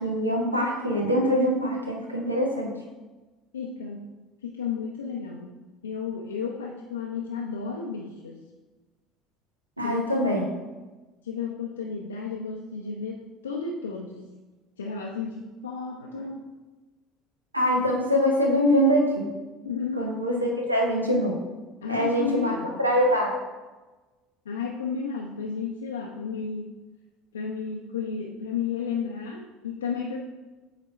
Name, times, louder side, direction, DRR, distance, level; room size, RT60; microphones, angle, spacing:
voice 1, 0.0-2.7 9.8-10.5 17.5-19.3 20.0-20.3 20.7-21.3 21.9-22.5 22.8-23.3, equal, 90° right, 0 dB, 0.9 m, -23 dB
voice 2, 3.5-4.1 4.4-8.4 9.8-10.3 11.2-14.3 14.8-16.5 19.6-20.1 21.8-22.8 24.5-26.8 27.3-30.2, left 5 dB, 75° left, -1 dB, 0.5 m, -33 dB
7.9 x 2.9 x 4.2 m, 1.2 s
figure-of-eight pair, 65°, 0 cm